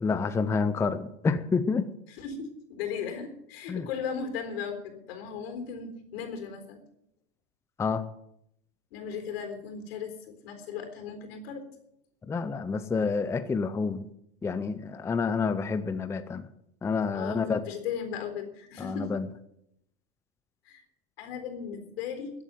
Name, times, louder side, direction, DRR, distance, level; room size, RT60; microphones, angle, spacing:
voice 1, 0.0-1.9 3.7-3.9 7.8-8.0 12.3-14.0 14.4-16.4 16.8-17.6 18.8-19.3, left 5 dB, 10° left, 11 dB, 0.5 m, -28 dB
voice 2, 2.1-6.8 8.9-11.7 17.1-19.1 20.6-20.8 21.2-22.3, left 6 dB, 70° left, 6 dB, 3.9 m, -37 dB
13.5 x 8.4 x 9.1 m, 0.78 s
supercardioid pair, 135°, 31 cm